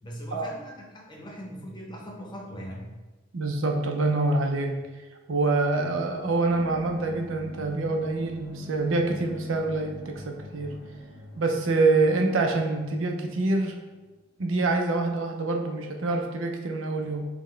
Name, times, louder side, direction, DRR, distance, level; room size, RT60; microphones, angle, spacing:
voice 1, 0.0-2.9, equal, 25° left, -2 dB, 0.7 m, -40 dB
voice 2, 3.3-4.8 5.3-10.8 11.4-13.8 14.4-17.3, right 3 dB, 80° right, 3 dB, 0.6 m, -26 dB
sound 1, 6.4-14.1, equal, 20° right, 1.2 m, -45 dB
5.7 x 2.2 x 3.2 m, 1.2 s
head